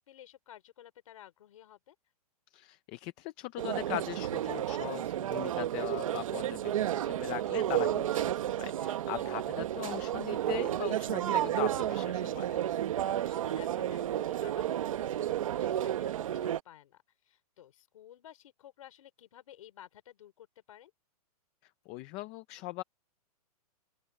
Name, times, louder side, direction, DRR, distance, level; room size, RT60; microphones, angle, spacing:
voice 1, 0.0-2.0 9.1-9.3 13.0-20.9, left 11 dB, 60° left, 4.0 m, -54 dB
voice 2, 2.5-12.6 21.9-22.8, left 19 dB, 15° left, 0.5 m, -40 dB
sound 1, 3.6-16.6, right 11 dB, 55° right, 1.1 m, -32 dB
open air
hypercardioid pair, 170°, 20 cm